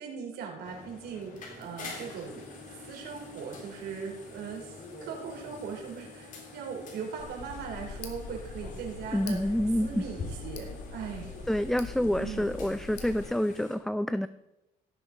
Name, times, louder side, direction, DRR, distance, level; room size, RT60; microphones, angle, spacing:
voice 1, 0.0-9.5 9.8-11.3 12.1-12.5, right 6 dB, 80° right, 0 dB, 4.0 m, -39 dB
sound 1, 0.6-13.8, left 3 dB, 50° left, 3.9 m, -46 dB
Tick, 7.2-13.2, left 5 dB, 75° left, 2.1 m, -43 dB
voice 2, 9.1-10.0 11.5-14.3, equal, ahead, 13 dB, 0.3 m, -28 dB
16.5 x 6.8 x 5.1 m, 0.95 s
cardioid pair, 110°, 17 cm